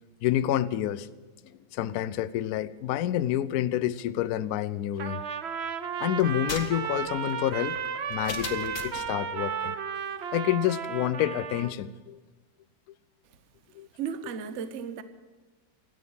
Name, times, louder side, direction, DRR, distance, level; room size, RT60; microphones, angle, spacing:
voice 1, 0.2-1.1 1.7-5.2 6.0-7.8 8.1-9.7 10.3-12.2 13.8-13.9, left 12 dB, 75° left, 0.8 m, -28 dB
Trumpet, 5.0-11.7, right 7 dB, 85° right, 0.5 m, -34 dB
sound 1, 6.2-9.1, left 5 dB, 45° left, 1.3 m, -39 dB
voice 2, 14.0-15.0, right 7 dB, 55° right, 0.8 m, -34 dB
13.5 x 9.3 x 8.6 m
omnidirectional pair, 2.2 m